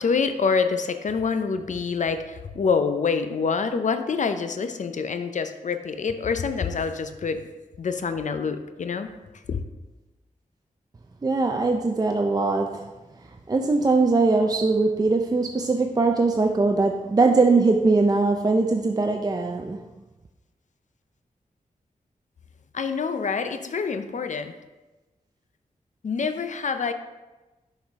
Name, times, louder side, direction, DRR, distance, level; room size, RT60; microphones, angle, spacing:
voice 1, 0.0-7.4 7.8-9.1 9.5-9.6 22.7-24.5 26.0-26.9, left 5 dB, 60° left, 9 dB, 0.5 m, -26 dB
voice 2, 11.2-12.9 13.5-19.8, right 3 dB, 25° right, 3 dB, 0.4 m, -21 dB
6.5 x 4.9 x 3.5 m, 1.1 s
wide cardioid pair, 85°, 14 cm